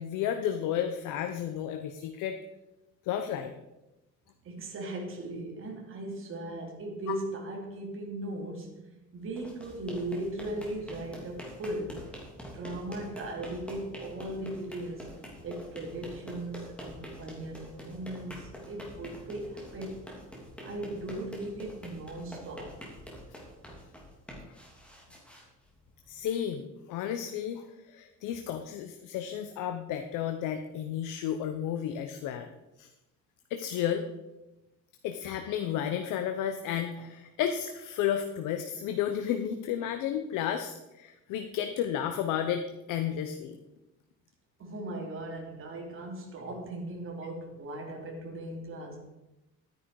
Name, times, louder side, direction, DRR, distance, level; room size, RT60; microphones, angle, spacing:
voice 1, 0.0-2.4 3.0-3.6 26.1-32.5 32.8-32.9 33.5-34.0 35.0-43.6, left 9 dB, 85° left, 7 dB, 1.0 m, -32 dB
voice 2, 4.4-8.8 9.1-12.0 12.4-15.1 15.4-20.0 20.6-22.8 44.6-49.1, right 1 dB, 45° right, 1 dB, 3.1 m, -38 dB
sound 1, 9.2-26.2, equal, 5° left, 3.0 m, -46 dB
12.5 x 9.8 x 4.8 m, 0.97 s
cardioid pair, 145°, 31 cm